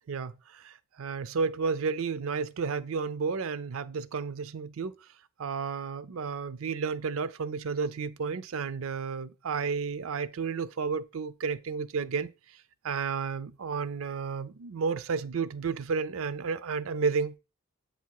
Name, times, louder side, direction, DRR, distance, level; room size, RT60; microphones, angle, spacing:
voice 1, 0.1-4.9 5.4-12.3 12.8-17.4, right 5 dB, 70° right, 0.5 m, -32 dB
8.0 x 2.8 x 4.6 m
head